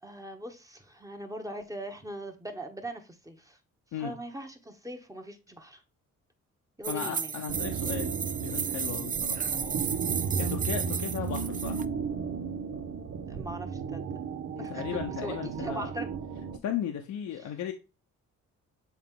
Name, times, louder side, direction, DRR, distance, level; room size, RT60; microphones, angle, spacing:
voice 1, 0.0-3.6 4.0-5.8 6.8-7.3 10.3-10.7 13.3-14.0 14.6-16.1 17.4-17.5, right 1 dB, 10° right, 1.3 m, -41 dB
sound 1, 6.8-11.8, right 6 dB, 25° right, 0.5 m, -34 dB
voice 2, 6.9-8.1 8.4-9.8 10.1-11.8 14.6-15.9 16.6-17.7, left 9 dB, 70° left, 1.0 m, -36 dB
sound 2, 7.5-16.6, right 6 dB, 50° right, 0.8 m, -34 dB
7.3 x 4.0 x 3.7 m
cardioid pair, 90°, 30 cm